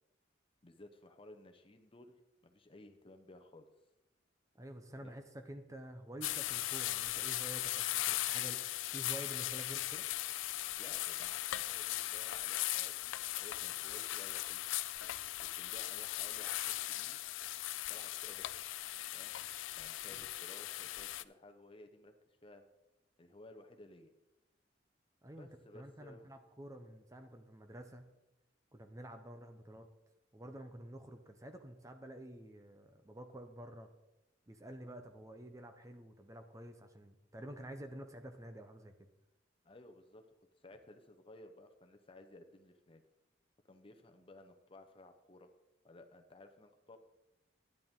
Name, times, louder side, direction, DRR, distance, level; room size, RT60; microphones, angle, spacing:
voice 1, 0.6-3.6 5.0-5.1 10.8-14.6 15.6-17.2 17.9-18.5 19.1-19.3 19.8-22.1 22.4-22.6 23.2-24.1 25.4-26.3 39.6-40.2 40.6-43.0 43.7-45.5 45.8-47.0, left 2 dB, 30° left, 6 dB, 0.8 m, -57 dB
voice 2, 4.5-8.6 8.9-10.0 25.2-25.5 25.7-28.1 28.7-29.9 30.3-33.9 34.5-39.1, right 1 dB, 15° right, 7 dB, 0.7 m, -49 dB
sound 1, 6.2-21.2, left 15 dB, 90° left, 0.4 m, -38 dB
10.5 x 10.5 x 3.7 m, 0.97 s
head